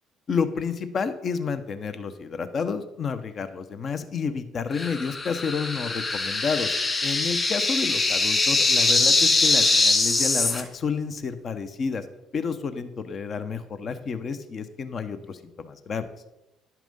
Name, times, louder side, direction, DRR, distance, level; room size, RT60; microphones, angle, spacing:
voice 1, 0.3-12.0 12.3-16.1, left 5 dB, 45° left, 10 dB, 0.9 m, -30 dB
sound 1, 4.7-10.6, left 3 dB, 30° left, 2.2 m, -22 dB
10.5 x 5.9 x 5.5 m, 0.94 s
supercardioid pair, 70°, 0 cm